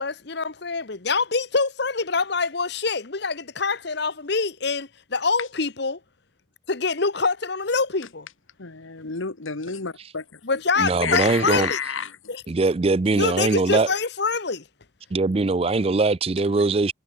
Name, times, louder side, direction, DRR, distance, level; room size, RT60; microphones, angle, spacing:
voice 1, 0.0-6.0 6.7-8.3 10.4-11.8 12.3-12.4 13.2-14.6, left 4 dB, 55° left, 1.2 m, -25 dB
voice 2, 8.6-10.4 11.0-12.1, left 6 dB, 85° left, 1.5 m, -30 dB
voice 3, 10.8-11.7 12.5-13.9 15.1-16.9, right 3 dB, 30° right, 0.4 m, -21 dB
head